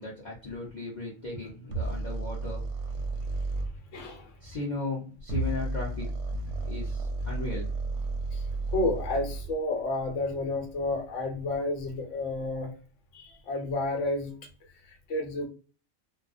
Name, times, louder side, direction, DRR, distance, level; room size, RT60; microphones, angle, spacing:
voice 1, 0.0-2.6 4.4-6.1 6.6-7.7, left 3 dB, 45° left, -5 dB, 0.7 m, -36 dB
sound 1, 1.7-3.7 5.2-9.5, right 2 dB, 65° right, 0.8 m, -32 dB
voice 2, 3.9-4.3 8.3-12.7 13.1-14.3 14.6-15.5, left 2 dB, 70° left, 2 dB, 1.0 m, -31 dB
2.3 x 2.2 x 2.4 m, 0.36 s
omnidirectional pair, 1.4 m